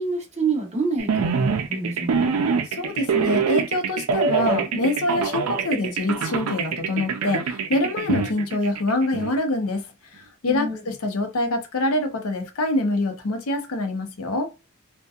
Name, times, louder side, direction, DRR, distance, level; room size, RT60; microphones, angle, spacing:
voice 1, 0.0-2.3 10.5-10.8, right 3 dB, 30° right, 0.8 m, -27 dB
sound 1, 1.0-9.3, right 5 dB, 80° right, 0.4 m, -25 dB
voice 2, 2.7-9.9 10.1-14.5, left 2 dB, 75° left, 0.6 m, -25 dB
2.7 x 2.2 x 2.3 m
head